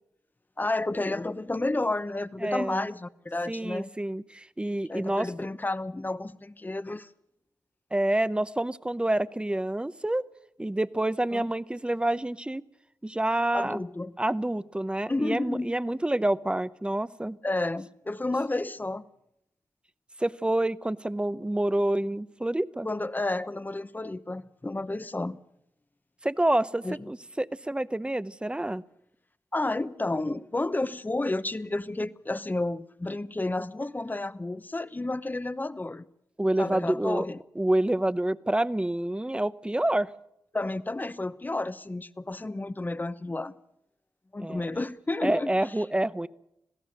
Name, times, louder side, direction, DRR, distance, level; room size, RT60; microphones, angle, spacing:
voice 1, 0.6-3.9 4.9-7.1 11.3-11.5 13.5-14.1 15.1-15.8 17.4-19.0 22.8-25.4 26.8-27.1 29.5-36.1 36.6-37.4 40.5-43.5 44.3-45.5, left 2 dB, 25° left, 0.8 m, -31 dB
voice 2, 2.4-2.9 3.5-5.3 7.9-10.2 10.6-12.6 13.0-13.8 14.2-17.4 20.2-22.9 26.2-28.8 36.4-37.2 37.6-40.1 44.4-44.7 45.2-46.3, right 1 dB, 15° right, 0.7 m, -28 dB
26.5 x 17.0 x 6.5 m
wide cardioid pair, 75°, 7 cm